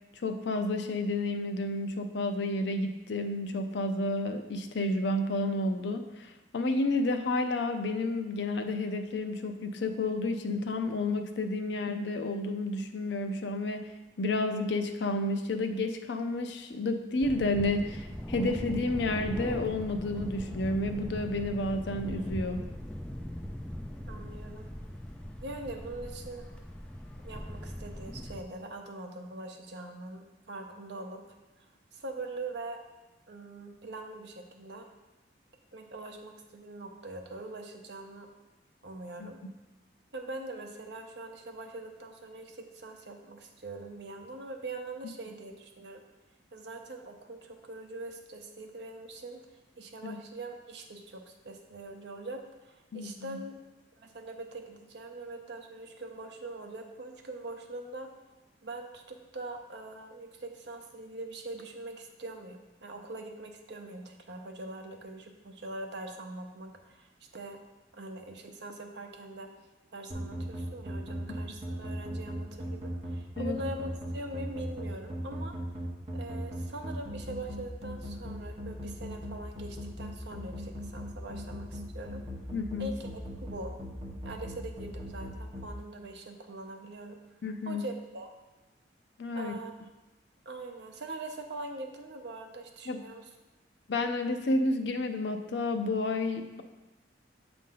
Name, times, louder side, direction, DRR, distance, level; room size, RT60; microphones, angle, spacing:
voice 1, 0.2-22.6 39.2-39.3 50.0-50.2 52.9-53.4 71.3-71.4 73.4-73.6 82.5-82.9 87.4-87.9 89.2-89.6 92.9-93.0 93.9-96.6, left 2 dB, 65° left, 6 dB, 0.5 m, -31 dB
Thunder, 17.2-28.4, equal, 5° left, 0.3 m, -40 dB
voice 2, 24.1-24.7 25.4-26.4 27.2-31.2 31.6-31.7 31.9-32.8 33.3-34.9 35.7-38.3 38.8-39.4 40.1-46.0 46.5-49.4 49.8-53.6 54.0-58.1 58.6-67.6 68.0-69.5 69.9-75.5 76.1-82.2 82.8-83.7 84.2-87.2 87.7-88.3 89.3-89.7 90.5-93.3, right 2 dB, 65° right, 4 dB, 0.7 m, -43 dB
sound 1, 70.1-85.7, equal, 30° right, 0.9 m, -38 dB
7.4 x 2.6 x 5.5 m, 1.1 s
head